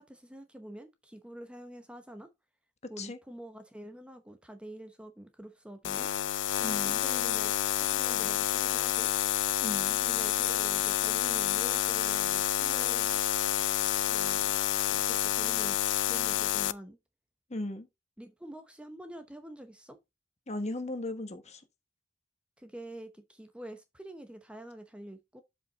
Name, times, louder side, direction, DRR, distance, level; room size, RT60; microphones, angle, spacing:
voice 1, 0.0-2.3 2.9-6.1 6.8-9.1 10.0-13.2 14.0-14.6 14.9-15.8 16.0-17.0 18.2-20.0 22.6-25.4, right 1 dB, 5° right, 0.8 m, -46 dB
sound 1, 5.8-16.7, left 12 dB, 80° left, 0.4 m, -29 dB
voice 2, 6.6-7.0 9.6-10.0 17.5-17.9 20.5-21.6, left 2 dB, 40° left, 1.3 m, -37 dB
7.6 x 5.3 x 4.0 m
head